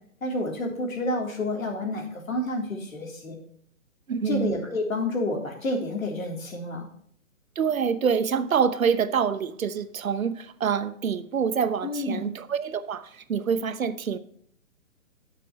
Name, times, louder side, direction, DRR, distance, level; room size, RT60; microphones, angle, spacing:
voice 1, 0.2-3.4 4.3-6.9 11.8-12.2, left 2 dB, 75° left, 3.5 m, -29 dB
voice 2, 4.1-4.5 7.6-14.2, right 7 dB, 75° right, 1.0 m, -26 dB
11.5 x 6.9 x 3.0 m
hypercardioid pair, 145°, 41 cm